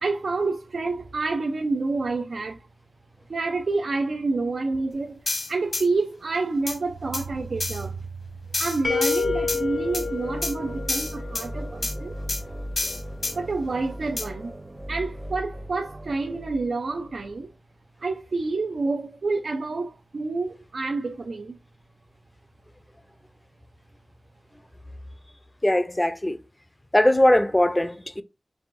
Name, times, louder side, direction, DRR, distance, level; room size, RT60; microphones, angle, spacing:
voice 1, 0.0-2.7 3.3-8.1 8.6-12.1 13.3-14.5 14.9-17.5 18.0-21.6, right 3 dB, 75° right, 0.4 m, -28 dB
sound 1, 5.3-5.8 6.7-6.8 7.1-7.2 7.6-7.8 8.5-9.6 9.9-10.1 10.4-10.5 10.9-11.5 11.8-11.9 12.3-12.4 12.8-13.3 14.2-14.3, left 2 dB, 60° left, 1.1 m, -28 dB
sound 2, 8.8-11.7, left 4 dB, 80° left, 0.7 m, -29 dB
sound 3, 9.2-17.3, equal, 30° right, 0.6 m, -37 dB
voice 2, 25.6-26.4 26.9-28.2, left 1 dB, 15° left, 0.5 m, -20 dB
4.7 x 3.4 x 2.5 m
wide cardioid pair, 60°, 0 cm